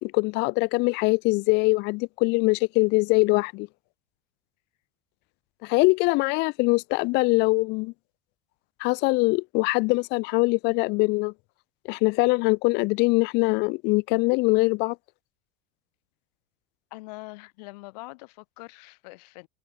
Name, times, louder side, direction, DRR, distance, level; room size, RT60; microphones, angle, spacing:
voice 1, 0.0-3.7 5.6-7.9 8.8-11.3 11.9-15.0, left 26 dB, 55° left, 0.9 m, -23 dB
voice 2, 16.9-19.5, left 26 dB, 70° left, 2.6 m, -43 dB
supercardioid pair, 130°, 21 cm